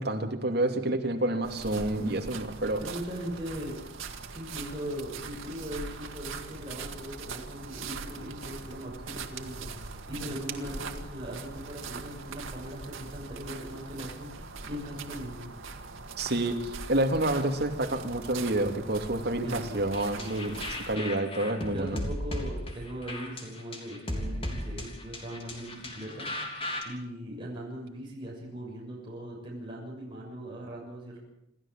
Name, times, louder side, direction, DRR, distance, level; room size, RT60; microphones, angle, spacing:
voice 1, 0.0-2.8 16.2-20.5 20.9-22.0, right 1 dB, 50° right, 3 dB, 2.6 m, -28 dB
sound 1, 1.4-21.0, right 4 dB, 80° right, 2.0 m, -41 dB
voice 2, 2.8-3.8 4.3-15.5 19.4-20.6 21.7-26.5 26.8-31.2, equal, 25° right, -4 dB, 6.8 m, -40 dB
sound 2, 19.9-26.8, left 1 dB, 25° left, 3.4 m, -36 dB
27.0 x 14.0 x 7.5 m, 0.80 s
head